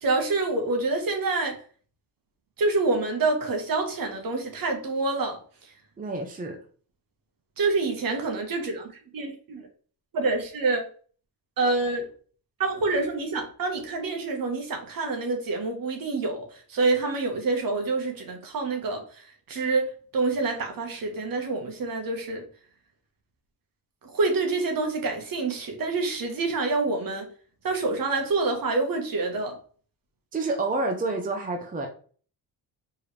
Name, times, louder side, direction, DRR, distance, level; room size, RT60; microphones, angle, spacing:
voice 1, 0.0-1.6 2.6-5.4 7.6-9.7 10.1-10.9 11.6-12.1 12.6-16.4 16.7-19.0 19.5-22.4 24.1-27.3 27.6-29.6, right 3 dB, 55° right, 3 dB, 1.5 m, -27 dB
voice 2, 6.0-6.6 30.3-31.9, right 2 dB, 20° right, 3 dB, 0.7 m, -28 dB
4.5 x 3.4 x 3.3 m, 0.43 s
cardioid pair, 80°, 42 cm